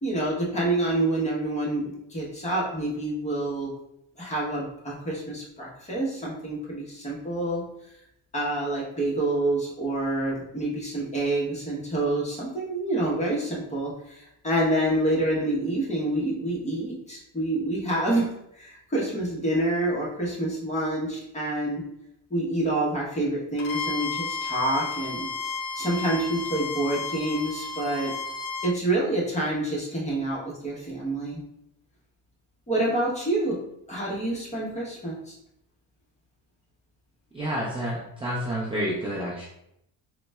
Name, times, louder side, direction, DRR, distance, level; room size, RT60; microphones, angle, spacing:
voice 1, 0.0-3.7 4.2-7.6 8.3-18.3 18.6-21.8 22.3-25.3 25.7-28.1 28.6-31.4 32.7-33.6 33.9-35.4, right 1 dB, 15° left, -4 dB, 0.9 m, -27 dB
Bowed string instrument, 23.6-28.8, left 4 dB, 80° left, 0.6 m, -33 dB
voice 2, 37.3-39.5, equal, 10° right, -6 dB, 0.5 m, -29 dB
3.8 x 2.2 x 2.2 m, 0.78 s
cardioid pair, 115°, 45 cm